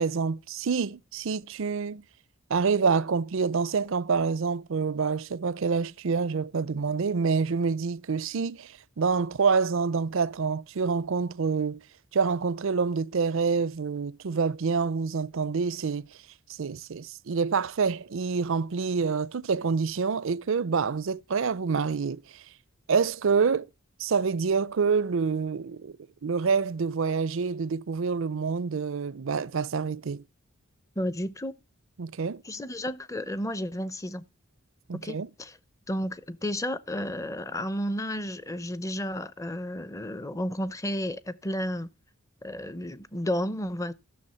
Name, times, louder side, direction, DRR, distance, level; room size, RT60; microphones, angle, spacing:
voice 1, 0.0-2.0 2.5-11.8 12.1-16.1 16.6-22.2 22.9-23.7 24.0-26.0 26.2-30.2 32.0-32.4 34.9-35.3, right 5 dB, 65° right, 0.5 m, -27 dB
voice 2, 31.0-31.6 32.4-34.2 35.0-35.6 35.9-41.9 42.4-43.9, equal, 15° left, 0.7 m, -32 dB
12.5 x 6.9 x 5.6 m
head